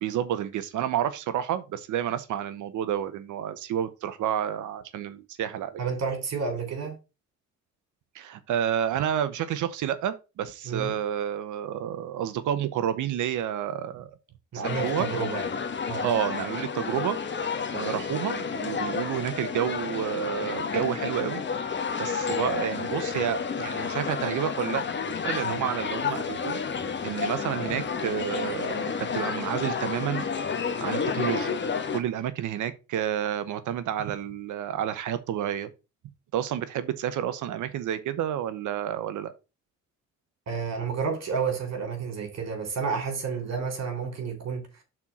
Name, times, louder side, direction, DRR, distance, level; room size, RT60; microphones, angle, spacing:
voice 1, 0.0-5.8 8.1-14.1 14.8-15.1 16.0-17.2 17.7-21.4 22.0-24.8 25.2-26.6 27.0-30.3 30.8-31.6 31.9-35.7 36.3-39.3, right 10 dB, 80° right, 1.0 m, -30 dB
voice 2, 5.8-7.0 10.6-11.0 14.5-15.5 15.9-16.1 25.4-25.7 40.5-44.6, right 5 dB, 60° right, 3.7 m, -30 dB
sound 1, 14.6-32.0, left 5 dB, 40° left, 1.3 m, -30 dB
6.1 x 4.5 x 6.0 m
cardioid pair, 90°, 30 cm